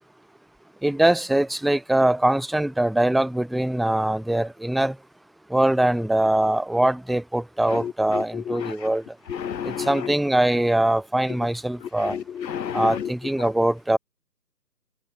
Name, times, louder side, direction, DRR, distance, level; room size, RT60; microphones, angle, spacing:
voice 1, 0.8-5.0 5.5-9.0 9.6-12.2 12.7-14.0, right 1 dB, ahead, 0.4 m, -22 dB
voice 2, 7.7-8.7 9.3-10.1 12.0-13.1, left 8 dB, 85° left, 0.7 m, -30 dB
figure-of-eight pair, 150°, 50 cm